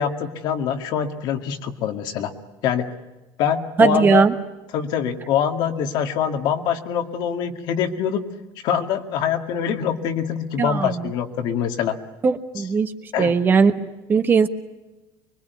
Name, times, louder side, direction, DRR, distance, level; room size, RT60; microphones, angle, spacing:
voice 1, 0.0-2.3 2.6-2.9 3.4-4.2 4.7-8.2 8.6-12.0 13.1-13.3, left 8 dB, 55° left, 6 dB, 2.1 m, -24 dB
voice 2, 3.8-4.3 10.6-11.0 12.2-12.9 13.2-14.5, right 5 dB, 25° right, 8 dB, 1.2 m, -18 dB
25.0 x 22.0 x 9.4 m, 1.1 s
cardioid pair, 160°, 9 cm